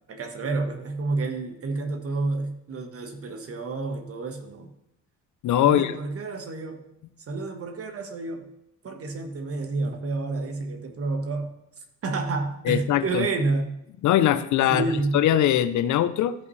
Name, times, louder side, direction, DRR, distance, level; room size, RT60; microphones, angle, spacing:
voice 1, 0.1-4.7 5.6-6.9 7.3-8.5 8.8-11.5 11.8-13.8 14.7-15.2, right 3 dB, 50° right, 6 dB, 1.3 m, -29 dB
voice 2, 5.4-5.9 12.7-13.3 14.0-14.8 15.1-16.3, left 11 dB, 75° left, 13 dB, 0.6 m, -21 dB
14.0 x 5.5 x 3.2 m, 0.84 s
cardioid pair, 90°, 30 cm